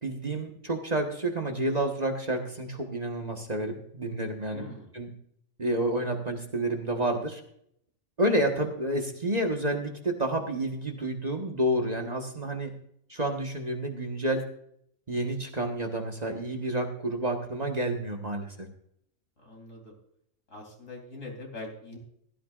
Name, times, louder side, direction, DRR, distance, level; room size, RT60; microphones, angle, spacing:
voice 1, 0.0-4.7 4.9-5.1 5.6-7.4 8.2-12.7 13.1-14.4 15.1-18.7, right 1 dB, 30° right, 3 dB, 1.4 m, -29 dB
voice 2, 4.5-4.9 19.4-19.9 20.5-22.0, left 2 dB, 75° left, 1 dB, 3.7 m, -43 dB
16.0 x 13.0 x 2.5 m, 0.69 s
omnidirectional pair, 1.4 m